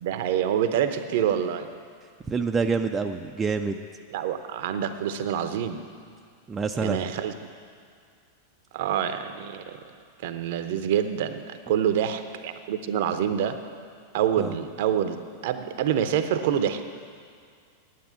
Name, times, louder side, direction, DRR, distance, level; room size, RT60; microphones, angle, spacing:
voice 1, 0.0-1.7 4.1-5.8 6.8-7.3 8.7-9.8 10.2-13.6 14.1-15.2 15.4-16.9, right 9 dB, 50° right, 10 dB, 0.7 m, -26 dB
voice 2, 2.3-3.8 6.5-7.0 14.4-14.5, right 5 dB, 20° right, 5 dB, 0.5 m, -27 dB
9.4 x 9.2 x 8.7 m, 2.2 s
figure-of-eight pair, 90°, 0 cm